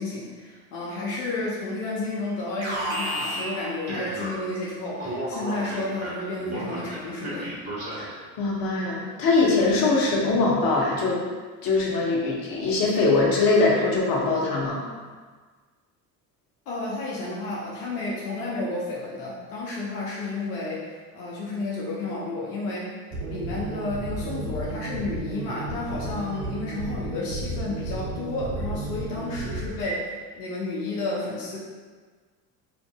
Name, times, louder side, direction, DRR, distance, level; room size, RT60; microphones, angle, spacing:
voice 1, 0.0-7.5 16.7-22.9 23.3-31.6, left 2 dB, 80° left, -6 dB, 0.8 m, -31 dB
Alarm, 2.6-4.6 5.0-8.2, right 1 dB, 35° right, 1.1 m, -33 dB
voice 2, 8.4-11.2 11.6-14.8, left 3 dB, 45° left, -4 dB, 1.0 m, -22 dB
sound 1, 23.1-29.7, right 2 dB, 70° right, 0.7 m, -33 dB
4.5 x 2.5 x 2.2 m, 1.5 s
hypercardioid pair, 60°, 46 cm